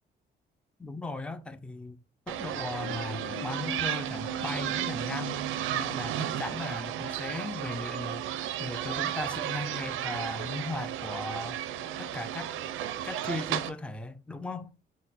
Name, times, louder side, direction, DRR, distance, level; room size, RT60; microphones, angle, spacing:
voice 1, 0.8-2.0 2.3-5.4 5.7-8.2 8.6-11.6 12.0-12.5 13.0-14.7, left 2 dB, 5° left, 0.4 m, -37 dB
sound 1, 2.3-13.7, right 11 dB, 90° right, 0.4 m, -33 dB
sound 2, 2.8-7.5, left 8 dB, 65° left, 0.5 m, -47 dB
4.0 x 2.1 x 4.0 m
cardioid pair, 90°, 20 cm